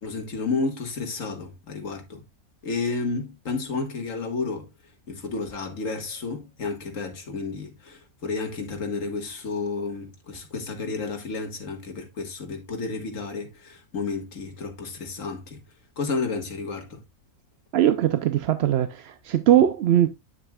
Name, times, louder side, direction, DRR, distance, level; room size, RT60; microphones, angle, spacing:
voice 1, 0.0-2.2 2.6-4.7 5.1-15.6 16.0-17.0, left 4 dB, 65° left, 1.9 m, -31 dB
voice 2, 17.7-20.1, right 11 dB, 60° right, 0.7 m, -20 dB
8.7 x 7.0 x 2.3 m
omnidirectional pair, 1.5 m